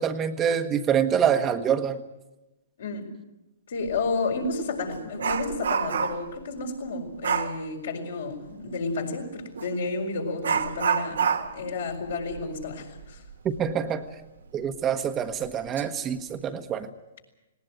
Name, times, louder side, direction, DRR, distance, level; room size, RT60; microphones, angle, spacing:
voice 1, 0.0-2.0 13.4-14.1 14.5-16.9, right 8 dB, 25° right, 7 dB, 1.2 m, -26 dB
voice 2, 2.8-3.1 3.7-11.2 11.5-13.2, left 3 dB, 70° left, 2 dB, 5.0 m, -31 dB
Dog, 3.9-4.0 4.4-6.4 7.2-7.6 9.5-9.7 10.4-13.7 14.0-14.1 14.7-14.8 15.4-15.8 16.2-16.4, right 6 dB, 75° right, 1.4 m, -28 dB
19.0 x 18.5 x 9.1 m, 1.0 s
hypercardioid pair, 120°, 0 cm